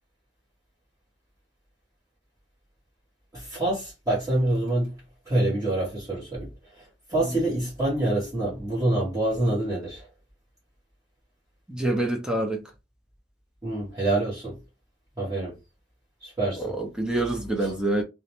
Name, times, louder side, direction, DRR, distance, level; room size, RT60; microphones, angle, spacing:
voice 1, 3.3-4.9 5.3-10.1 13.6-14.6 15.2-15.5 16.2-16.7 17.6-17.7, right 1 dB, 20° right, 1.0 m, -26 dB
voice 2, 11.7-12.6 16.6-18.0, right 2 dB, 5° right, 0.4 m, -26 dB
2.4 x 2.0 x 2.9 m
head